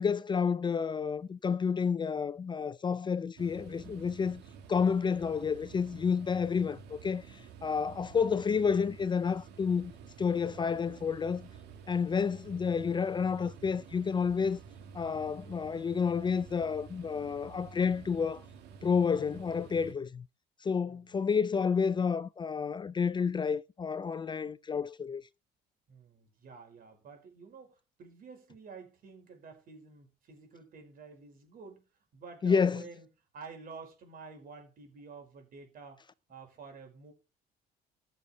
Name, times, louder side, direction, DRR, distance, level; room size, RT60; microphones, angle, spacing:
voice 1, 0.0-4.4 4.7-9.9 10.2-11.5 11.9-14.6 14.9-18.4 18.8-20.2 20.6-25.2 32.4-32.8, left 6 dB, 25° left, 0.5 m, -30 dB
sound 1, 3.4-19.9, right 6 dB, 80° right, 1.9 m, -50 dB
voice 2, 25.9-31.8 32.1-33.1 33.3-36.0 36.3-37.1, right 4 dB, 55° right, 5.2 m, -50 dB
15.0 x 7.0 x 4.5 m
cardioid pair, 110°, 17 cm